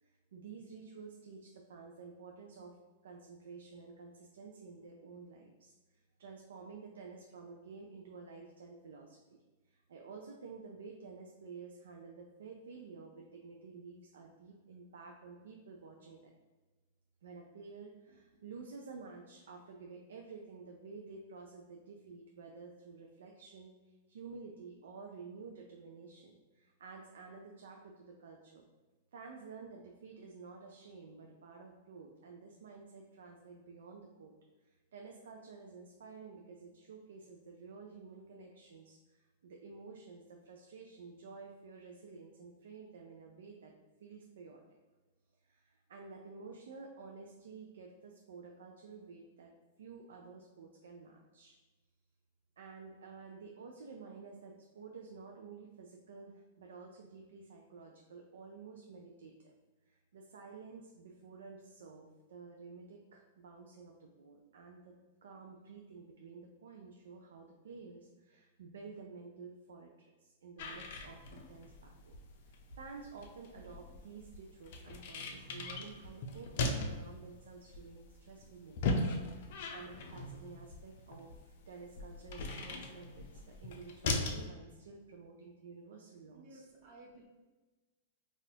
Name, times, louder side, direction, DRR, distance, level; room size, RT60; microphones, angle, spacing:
voice 1, 0.0-2.8 3.0-16.3 17.2-28.7 29.1-34.3 34.6-43.7 44.0-44.6 45.4-49.5 49.8-51.6 52.6-59.5 59.9-72.1 72.4-86.6, right 4 dB, 80° right, 1 dB, 0.4 m, -51 dB
sound 1, 70.6-84.5, left 2 dB, 60° left, 0.5 m, -39 dB
voice 2, 86.3-87.2, right 2 dB, 45° right, -2 dB, 1.0 m, -55 dB
4.1 x 2.4 x 2.7 m, 1.2 s
hypercardioid pair, 125°, 0 cm